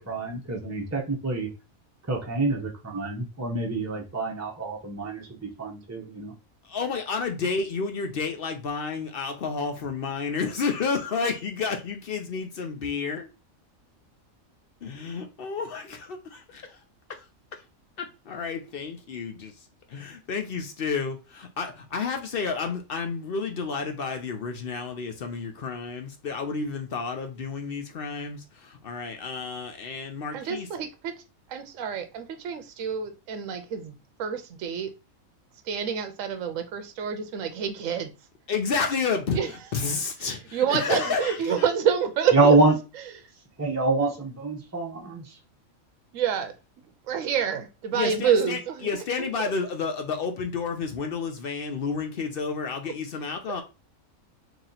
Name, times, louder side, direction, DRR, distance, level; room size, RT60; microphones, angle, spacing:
voice 1, 0.0-1.5 2.1-6.3 42.3-42.7 43.6-45.2, right 3 dB, 15° right, 0.6 m, -25 dB
voice 2, 6.6-13.3 14.8-16.8 17.1-17.3 17.5-17.6 18.0-30.7 38.5-39.4 39.7-41.7 47.9-53.6, left 5 dB, 60° left, 0.6 m, -31 dB
voice 3, 30.3-31.1 31.5-33.9 34.2-34.9 35.7-38.1 39.3-39.5 40.5-42.6 46.1-46.5 47.1-48.9 49.2-49.3 53.5-53.6, right 7 dB, 70° right, 0.9 m, -27 dB
3.1 x 2.8 x 3.8 m
omnidirectional pair, 1.5 m